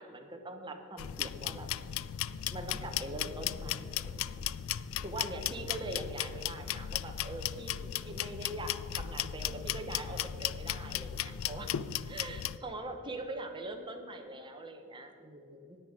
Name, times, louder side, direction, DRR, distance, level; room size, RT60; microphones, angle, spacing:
voice 1, 0.0-1.7 2.5-4.3 5.0-11.7 12.0-15.8, right 2 dB, 25° right, 4 dB, 1.1 m, -42 dB
sound 1, 1.0-12.6, left 11 dB, 65° left, 0.3 m, -36 dB
10.0 x 9.0 x 5.0 m, 2.5 s
head